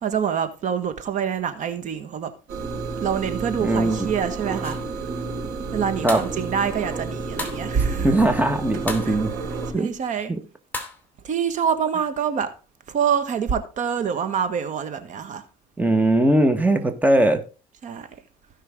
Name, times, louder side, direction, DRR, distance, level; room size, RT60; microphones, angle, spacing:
voice 1, 0.0-2.3 3.0-4.8 5.7-8.2 9.0-9.2 9.8-10.3 11.2-12.5 12.9-15.4 17.8-18.1, right 7 dB, 55° right, 1.6 m, -26 dB
sound 1, 2.5-9.7, right 4 dB, 80° right, 4.6 m, -31 dB
voice 2, 3.6-4.0 6.0-6.2 8.0-9.3 9.7-9.9 10.3-10.4 15.8-17.4, right 1 dB, 10° right, 1.5 m, -20 dB
sound 2, 4.6-4.9 6.1-6.4 7.4-7.7 8.9-9.1 10.7-11.0, left 2 dB, 10° left, 2.7 m, -32 dB
17.0 x 5.6 x 3.7 m
cardioid pair, 110°, 16 cm